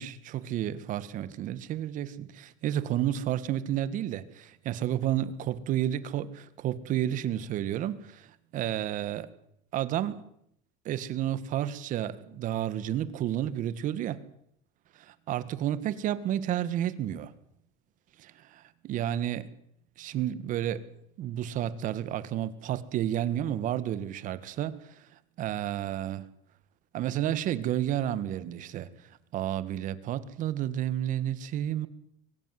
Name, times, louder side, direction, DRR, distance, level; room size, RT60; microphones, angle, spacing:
voice 1, 0.0-8.3 8.5-9.3 9.7-10.2 10.9-14.2 15.3-17.3 18.2-19.5 20.0-20.9 21.2-24.8 25.4-26.3 26.9-28.9 29.3-31.9, right 11 dB, 45° right, 1.8 m, -31 dB
23.5 x 15.5 x 9.4 m
supercardioid pair, 135°, 18 cm